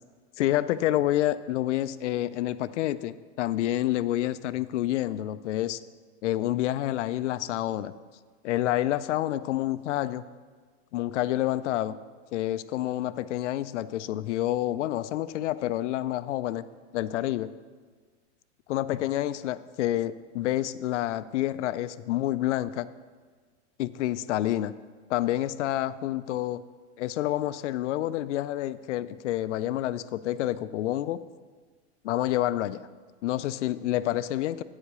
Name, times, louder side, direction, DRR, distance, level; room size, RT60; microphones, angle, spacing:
voice 1, 0.4-5.8 6.2-7.9 8.4-10.2 10.9-12.0 12.3-16.7 16.9-17.5 18.7-22.9 23.8-24.7 25.1-26.6 27.0-31.2 32.0-32.8 33.2-34.6, left 14 dB, 80° left, 15 dB, 0.5 m, -28 dB
9.9 x 4.9 x 6.8 m, 1.5 s
supercardioid pair, 155°, 35 cm